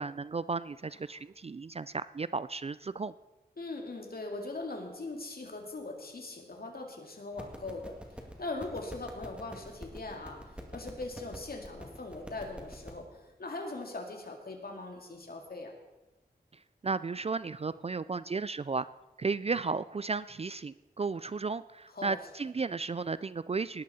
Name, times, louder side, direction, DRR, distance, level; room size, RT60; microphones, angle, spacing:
voice 1, 0.0-3.1 16.8-18.9 19.2-23.8, right 4 dB, 35° right, 16 dB, 0.3 m, -34 dB
voice 2, 3.6-8.0 8.4-15.7 21.9-22.2, left 2 dB, 65° left, 2 dB, 2.2 m, -40 dB
sound 1, 7.3-12.9, equal, 5° right, 2.2 m, -47 dB
18.5 x 11.5 x 4.2 m, 1.1 s
wide cardioid pair, 70°, 17 cm